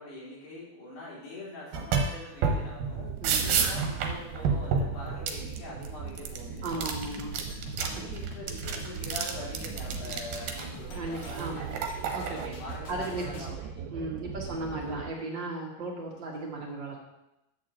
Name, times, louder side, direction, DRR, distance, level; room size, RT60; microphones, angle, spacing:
voice 1, 0.0-3.1 3.4-6.9 7.8-11.7 12.4-13.9 14.4-15.1, left 2 dB, 85° left, -6 dB, 5.4 m, -44 dB
sound 1, 1.7-2.2 2.4-5.9 6.2-7.9 8.2-10.7 11.2-12.5, right 5 dB, 75° right, 2.6 m, -30 dB
sound 2, 3.0-15.1, right 7 dB, 90° right, 2.7 m, -40 dB
voice 2, 3.2-3.5 6.6-7.3 7.9-8.0 10.9-11.6 12.1-12.5 12.9-13.5 13.9-17.1, right 2 dB, 40° right, -3 dB, 1.7 m, -36 dB
sound 3, 7.0-13.5, left 4 dB, 65° left, 1.9 m, -47 dB
10.0 x 4.4 x 7.4 m, 0.89 s
omnidirectional pair, 4.5 m